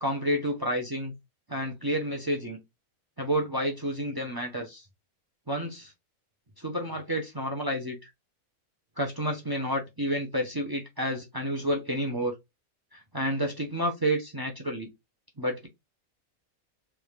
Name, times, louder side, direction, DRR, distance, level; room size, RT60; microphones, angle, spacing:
voice 1, 0.0-1.1 1.5-2.6 3.2-4.8 5.5-5.9 6.6-8.1 9.0-12.3 12.9-14.9 15.4-15.7, equal, 30° right, 0.4 m, -30 dB
3.4 x 2.4 x 3.2 m
omnidirectional pair, 1.5 m